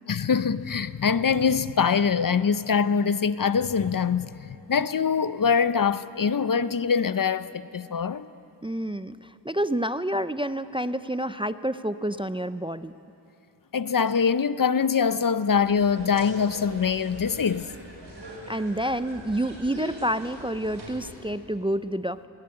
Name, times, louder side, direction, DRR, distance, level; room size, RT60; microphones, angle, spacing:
voice 1, 0.1-8.3 13.7-17.7, left 6 dB, 50° left, 0.6 m, -24 dB
voice 2, 8.6-12.9 18.5-22.3, right 1 dB, 15° right, 0.4 m, -28 dB
sound 1, 15.5-21.1, right 1 dB, 70° right, 6.1 m, -42 dB
20.5 x 17.5 x 9.8 m
wide cardioid pair, 75°, 43 cm